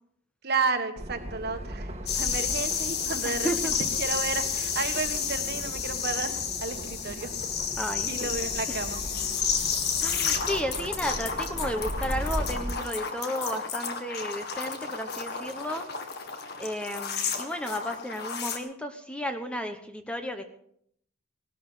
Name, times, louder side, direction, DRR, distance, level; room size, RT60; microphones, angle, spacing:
voice 1, 0.4-7.3 8.1-9.0, right 4 dB, 50° right, 8 dB, 1.5 m, -32 dB
sound 1, 1.0-12.7, equal, 30° right, 1.6 m, -38 dB
sound 2, 2.1-18.6, left 6 dB, 50° left, 2.0 m, -31 dB
voice 2, 3.2-3.7 7.1-7.2 7.8-8.3 8.7-8.8 10.0-16.3 16.6-20.4, equal, 5° left, 7 dB, 1.0 m, -33 dB
19.0 x 12.5 x 5.6 m, 0.70 s
head